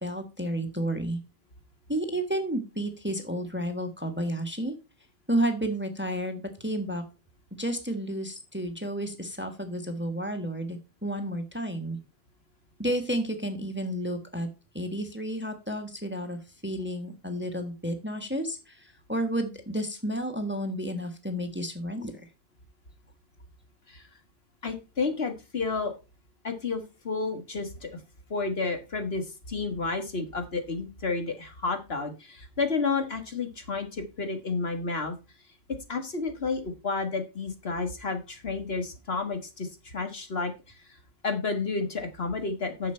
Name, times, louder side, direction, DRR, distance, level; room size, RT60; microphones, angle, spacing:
voice 1, 0.0-1.2 1.9-4.7 5.3-7.0 7.6-12.0 12.8-14.5 14.7-22.1, right 1 dB, 10° right, 6 dB, 1.3 m, -31 dB
voice 2, 24.6-25.9 26.4-28.0 28.3-35.1 35.9-40.5 41.2-42.9, left 4 dB, 60° left, 6 dB, 1.8 m, -31 dB
10.0 x 6.7 x 4.4 m, 0.29 s
omnidirectional pair, 1.2 m